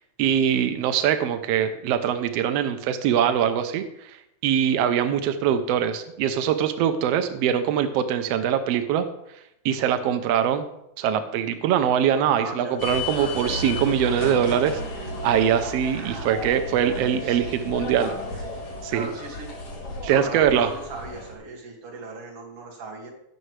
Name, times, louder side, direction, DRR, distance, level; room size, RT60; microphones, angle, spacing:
voice 1, 0.2-3.8 4.4-9.1 9.6-10.7 11.0-14.8 15.2-18.2 18.8-19.1 20.0-20.7, right 9 dB, 85° right, 9 dB, 1.4 m, -22 dB
voice 2, 12.4-12.8 13.2-13.5 15.9-16.5 16.8-17.5 18.9-19.6 20.1-23.1, right 2 dB, 50° right, -2 dB, 2.8 m, -38 dB
sound 1, 12.8-21.3, left 2 dB, 50° left, 3.1 m, -33 dB
17.5 x 6.5 x 3.2 m, 0.83 s
omnidirectional pair, 3.6 m